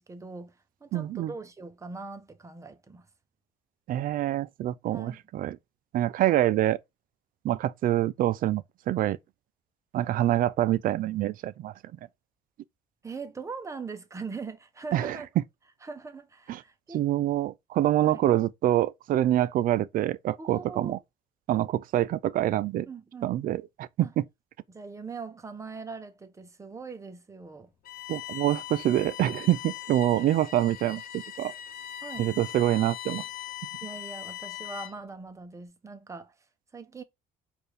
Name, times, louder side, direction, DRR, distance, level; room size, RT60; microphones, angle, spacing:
voice 1, 0.0-3.1 4.9-5.2 13.0-15.3 15.8-17.0 18.0-18.2 20.4-21.0 22.9-23.3 24.0-24.1 24.7-27.7 32.0-32.3 33.8-36.3 36.7-37.0, right 4 dB, 20° right, 0.7 m, -41 dB
voice 2, 0.9-1.3 3.9-5.6 5.9-6.8 7.4-9.2 9.9-11.7 14.9-15.2 16.5-16.6 16.9-21.0 21.5-22.9 23.2-24.2 28.1-31.0 31.4-31.5 32.2-33.2, right 13 dB, 55° right, 0.4 m, -26 dB
Bowed string instrument, 27.9-35.1, left 13 dB, 55° left, 0.5 m, -40 dB
4.4 x 2.5 x 3.3 m
cardioid pair, 110°, 17 cm